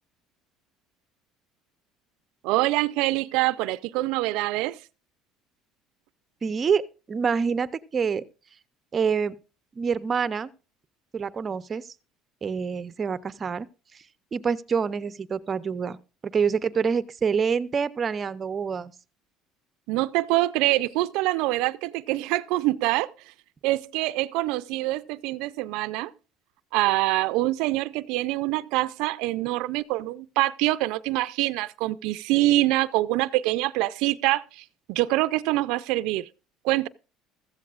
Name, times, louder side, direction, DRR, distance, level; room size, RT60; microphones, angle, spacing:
voice 1, 2.4-4.8 19.9-23.1 23.6-26.1 26.7-36.3 36.6-36.9, right 18 dB, 75° right, 0.5 m, -25 dB
voice 2, 6.4-6.8 7.1-8.2 8.9-9.4 9.8-10.5 11.1-11.9 12.4-13.7 14.3-16.0 16.3-18.9, right 6 dB, 30° right, 0.6 m, -26 dB
15.0 x 14.0 x 2.4 m
cardioid pair, 125°, 0 cm